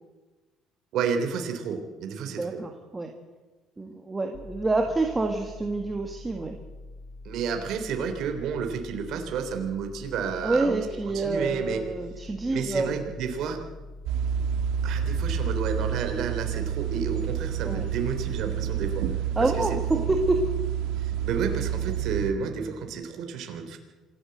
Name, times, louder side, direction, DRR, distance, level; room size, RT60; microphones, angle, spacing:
voice 1, 0.9-2.6 7.2-10.8 11.1-11.8 12.4-13.6 14.8-19.0 19.4-19.7 19.9-20.0 21.0-23.8, right 6 dB, 60° right, 5 dB, 3.4 m, -31 dB
voice 2, 2.3-3.1 3.8-6.6 10.4-13.1 17.6-17.8 19.4-20.5, right 2 dB, 15° right, 3 dB, 1.7 m, -27 dB
sound 1, 4.3-15.8, left 2 dB, 35° left, 2.6 m, -44 dB
sound 2, 14.1-22.3, right 8 dB, 90° right, 1.6 m, -29 dB
26.0 x 13.5 x 8.0 m, 1.2 s
cardioid pair, 150°, 0 cm